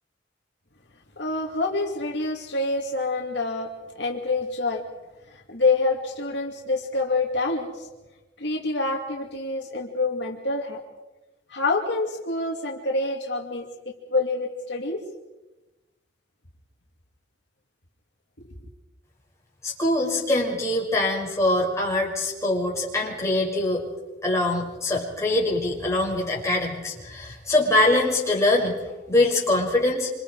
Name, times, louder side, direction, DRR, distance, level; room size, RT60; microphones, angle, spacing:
voice 1, 1.2-4.8 5.3-7.9 8.4-10.8 11.5-13.7 14.1-15.0, left 3 dB, 65° left, 0 dB, 2.5 m, -26 dB
voice 2, 19.6-23.8 24.2-28.8 29.1-30.1, left 2 dB, 15° left, -3 dB, 6.4 m, -23 dB
27.0 x 27.0 x 4.8 m, 1.1 s
head